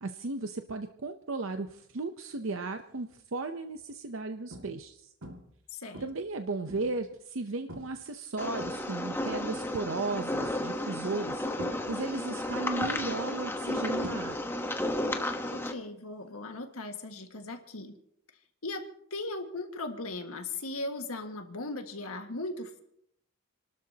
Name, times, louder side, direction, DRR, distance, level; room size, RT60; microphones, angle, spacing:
voice 1, 0.0-5.1 6.0-14.4, right 3 dB, 65° right, 7 dB, 0.7 m, -35 dB
sound 1, 2.9-3.2 3.8-3.9 4.5-4.9 5.2-5.6 5.9-7.1 7.7-8.0 8.4-9.2 10.4-10.9 11.6-12.5 12.8-14.7 14.9-15.4 17.4-17.5, right 1 dB, 80° right, 2.2 m, -45 dB
voice 2, 5.7-6.0 15.5-18.0 18.6-18.9 19.1-22.8, left 2 dB, 90° left, 5 dB, 1.8 m, -38 dB
sound 2, 8.4-15.7, left 1 dB, 10° left, 1.0 m, -33 dB
30.0 x 12.5 x 2.9 m, 0.72 s
head